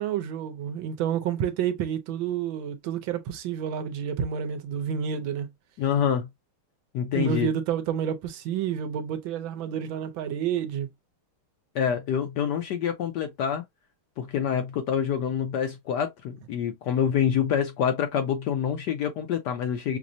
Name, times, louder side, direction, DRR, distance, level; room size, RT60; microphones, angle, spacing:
voice 1, 0.0-5.5 7.1-10.9, right 8 dB, 75° right, 1.4 m, -29 dB
voice 2, 5.8-6.3 6.9-7.5 11.7-13.6 14.2-20.0, left 8 dB, 70° left, 1.0 m, -26 dB
6.0 x 2.1 x 2.5 m
omnidirectional pair, 2.2 m